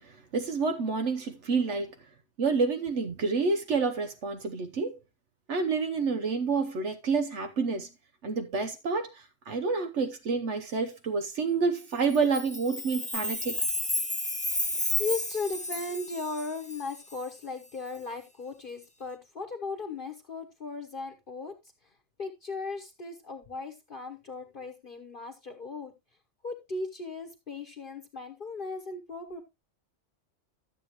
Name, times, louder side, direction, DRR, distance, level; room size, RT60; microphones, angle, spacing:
voice 1, 0.0-1.9 2.4-4.9 5.5-7.9 8.2-13.6, right 4 dB, 70° right, 1.3 m, -29 dB
Chime, 12.0-17.2, left 1 dB, 10° left, 0.5 m, -32 dB
voice 2, 14.9-21.5 22.2-25.9 26.4-29.4, left 3 dB, 45° left, 1.2 m, -37 dB
12.5 x 7.4 x 3.0 m
omnidirectional pair, 1.3 m